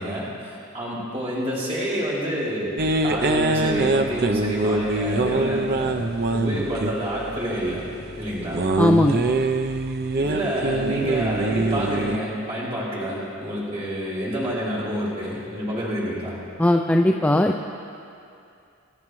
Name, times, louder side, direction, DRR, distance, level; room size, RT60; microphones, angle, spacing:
voice 1, 0.0-7.8 8.2-8.6 10.2-16.3, equal, 30° right, -8 dB, 4.1 m, -28 dB
sound 1, 2.8-12.2, right 2 dB, 45° right, 0.6 m, -24 dB
voice 2, 8.8-9.2 16.6-17.6, left 1 dB, 5° left, 2 dB, 0.4 m, -18 dB
27.5 x 13.5 x 3.1 m, 2.5 s
head